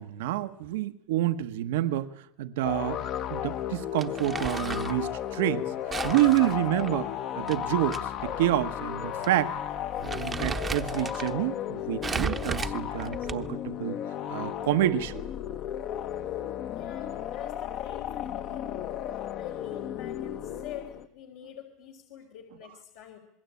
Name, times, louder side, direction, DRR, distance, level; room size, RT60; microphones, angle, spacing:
voice 1, 0.0-2.1 2.4-3.0 3.3-5.7 6.0-7.1 7.4-9.6 10.0-14.0 14.3-15.2, right 14 dB, 90° right, 9 dB, 1.3 m, -28 dB
sound 1, 2.6-21.1, left 10 dB, 45° left, 1.2 m, -34 dB
Crumpling crinkling, 4.0-5.0 5.9-8.0 8.3-8.4 9.2-9.4 9.8-11.3 12.0-13.6, right 5 dB, 15° right, 0.9 m, -35 dB
voice 2, 16.7-23.2, left 10 dB, 75° left, 1 dB, 3.7 m, -45 dB
26.5 x 21.0 x 8.5 m, 0.76 s
supercardioid pair, 150°, 0 cm